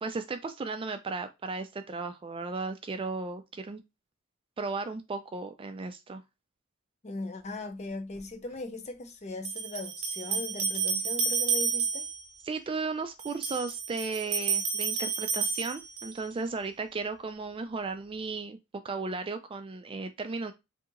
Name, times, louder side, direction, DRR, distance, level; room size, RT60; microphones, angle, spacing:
voice 1, 0.0-3.8 4.6-6.2 12.5-18.6 18.8-20.5, right 4 dB, 25° right, 0.3 m, -35 dB
voice 2, 7.0-12.1, left 2 dB, 30° left, 0.5 m, -39 dB
sound 1, 8.2-8.3 9.4-12.3 13.2-16.3, right 5 dB, 75° right, 0.9 m, -31 dB
2.8 x 2.8 x 3.7 m
head